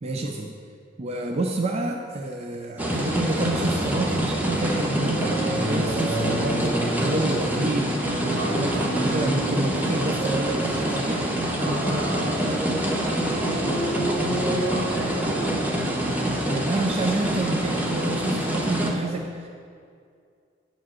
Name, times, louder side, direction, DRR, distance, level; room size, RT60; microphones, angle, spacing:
voice 1, 0.0-0.5 1.0-7.9 8.5-11.2 16.5-19.5, right 2 dB, 35° right, 2 dB, 0.5 m, -29 dB
sound 1, 2.8-18.9, right 1 dB, 10° right, 1.0 m, -25 dB
voice 2, 8.2-8.9 11.6-12.8 13.1-15.8, right 1 dB, 75° right, -2 dB, 1.7 m, -35 dB
9.0 x 4.9 x 6.1 m, 2.2 s
head